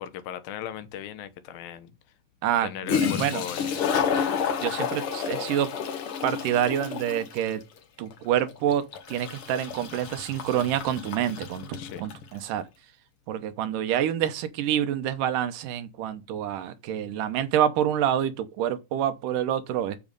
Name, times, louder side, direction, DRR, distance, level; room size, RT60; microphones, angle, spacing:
voice 1, 0.0-1.9 2.6-4.2 11.8-12.0, left 10 dB, 90° left, 2.8 m, -38 dB
Toilet flush, 0.8-0.9 2.6-2.7 2.9-12.3, left 7 dB, 55° left, 1.7 m, -30 dB
voice 2, 2.4-3.4 4.6-5.7 6.2-7.6 8.0-12.7 13.3-20.0, right 10 dB, 80° right, 2.3 m, -27 dB
7.2 x 7.1 x 5.3 m
omnidirectional pair, 4.0 m